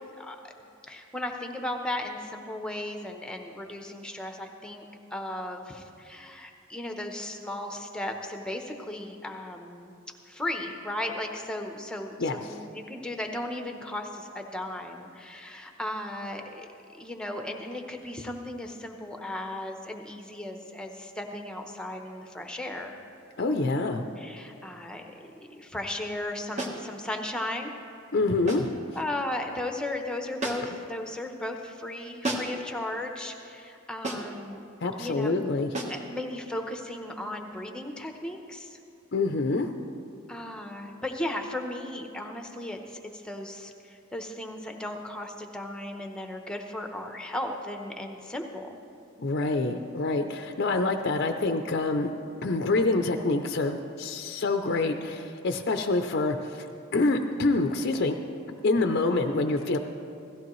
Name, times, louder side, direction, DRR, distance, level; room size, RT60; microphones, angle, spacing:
voice 1, 0.2-0.5 0.9-4.8 5.1-9.9 10.3-16.7 17.0-22.9 24.2-27.7 28.9-34.6 35.0-35.3 35.9-38.8 40.3-48.7, left 1 dB, 5° left, 3 dB, 0.8 m, -36 dB
voice 2, 12.2-12.6 23.4-24.0 28.1-28.7 34.8-35.7 39.1-39.7 49.2-52.1 52.4-56.7 56.9-58.2 58.6-59.8, left 3 dB, 50° left, 5 dB, 0.5 m, -26 dB
sound 1, 26.6-26.9 28.5-28.8 30.4-30.8 32.2-32.7 34.0-34.4 35.7-36.1, right 1 dB, 35° right, 1.3 m, -33 dB
17.0 x 14.5 x 3.1 m, 2.5 s
head